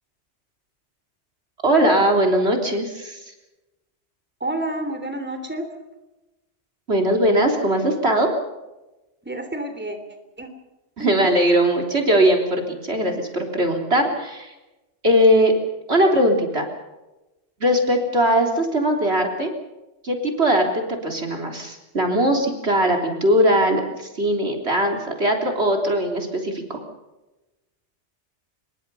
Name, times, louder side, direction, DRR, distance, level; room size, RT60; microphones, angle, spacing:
voice 1, 1.6-3.2 6.9-8.3 11.0-14.5 15.0-15.5 15.9-16.7 17.6-19.5 20.0-26.8, equal, 65° right, 3 dB, 3.8 m, -20 dB
voice 2, 4.4-5.7 9.2-10.0 10.4-10.5 11.0-11.3, right 1 dB, 10° right, 6 dB, 3.3 m, -29 dB
26.0 x 22.5 x 5.6 m, 1.0 s
omnidirectional pair, 1.2 m